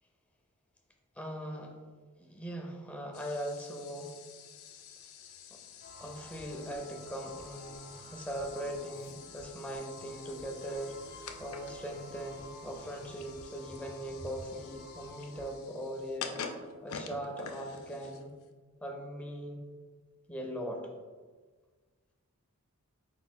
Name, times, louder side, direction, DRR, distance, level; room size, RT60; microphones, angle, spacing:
voice 1, 1.2-1.8 2.2-4.2 5.5-5.6 6.0-16.4 16.8-18.3 18.8-19.6 20.3-20.9, equal, 5° left, 1 dB, 0.5 m, -40 dB
sound 1, 3.1-18.5, left 5 dB, 70° left, 0.4 m, -48 dB
sound 2, 5.8-15.5, equal, 45° left, 0.8 m, -52 dB
4.6 x 4.1 x 2.2 m, 1.4 s
head